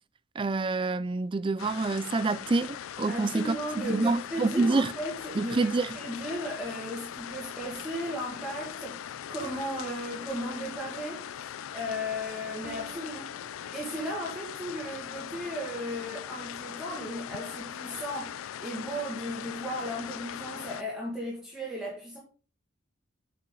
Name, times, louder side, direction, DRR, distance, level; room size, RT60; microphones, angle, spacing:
voice 1, 0.4-4.9 5.4-6.0, right 3 dB, 25° right, 0.3 m, -27 dB
sound 1, 1.6-20.8, left 9 dB, 80° left, 0.3 m, -40 dB
voice 2, 3.1-11.3 11.7-13.3 13.7-22.2, equal, 5° right, 1.9 m, -36 dB
sound 2, 9.4-11.0 12.6-14.1, right 2 dB, 40° right, 0.9 m, -50 dB
7.8 x 5.6 x 3.8 m
head